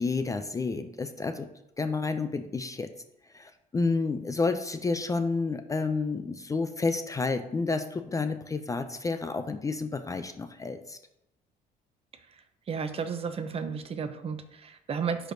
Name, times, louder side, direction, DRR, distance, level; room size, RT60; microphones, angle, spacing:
voice 1, 0.0-1.5 1.8-2.9 3.3-11.0, left 4 dB, 20° left, 9 dB, 0.4 m, -30 dB
voice 2, 12.7-15.3, right 6 dB, 35° right, 9 dB, 0.6 m, -33 dB
9.9 x 4.4 x 2.6 m, 0.84 s
cardioid pair, 110°, 17 cm